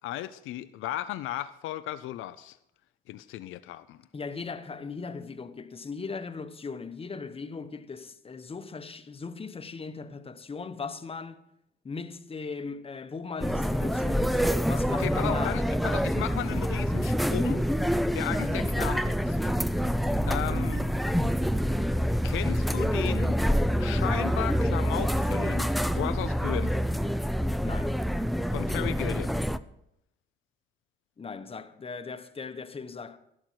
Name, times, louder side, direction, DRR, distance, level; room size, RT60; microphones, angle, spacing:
voice 1, 0.0-2.6 3.1-4.0 15.0-17.6 18.1-19.4 20.3-20.8 22.2-23.4 23.8-26.7 28.5-29.4, left 13 dB, 85° left, 0.5 m, -35 dB
voice 2, 4.1-11.4 11.8-15.6 27.6-28.0 31.2-33.2, left 4 dB, 30° left, 1.0 m, -38 dB
sound 1, 13.4-29.6, equal, ahead, 0.5 m, -26 dB
12.5 x 11.5 x 4.6 m
cardioid pair, 90°, 20 cm